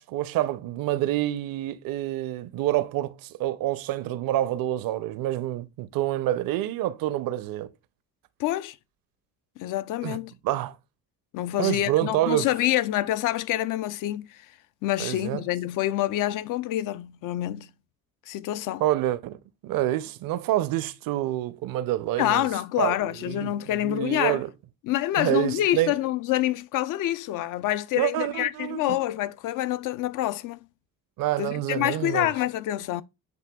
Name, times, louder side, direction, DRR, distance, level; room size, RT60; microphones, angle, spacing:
voice 1, 0.0-7.7 10.0-10.2 10.4-10.7 11.6-12.5 15.0-15.4 18.8-19.4 19.6-22.5 22.8-23.5 23.8-24.5 25.2-26.0 28.0-29.0 31.2-32.3, right 14 dB, 55° right, 0.6 m, -27 dB
voice 2, 8.4-8.8 9.6-10.3 11.3-14.4 14.8-17.7 18.3-18.8 22.2-24.4 24.8-30.6 31.4-33.0, left 14 dB, 55° left, 0.4 m, -27 dB
8.0 x 2.7 x 2.2 m
hypercardioid pair, 60°, 40 cm